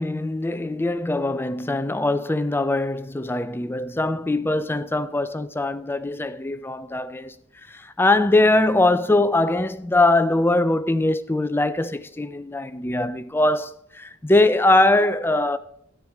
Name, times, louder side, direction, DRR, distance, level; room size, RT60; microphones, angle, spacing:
voice 1, 0.0-7.3 7.7-15.6, left 2 dB, 10° left, 0.4 m, -22 dB
13.5 x 8.7 x 3.5 m
head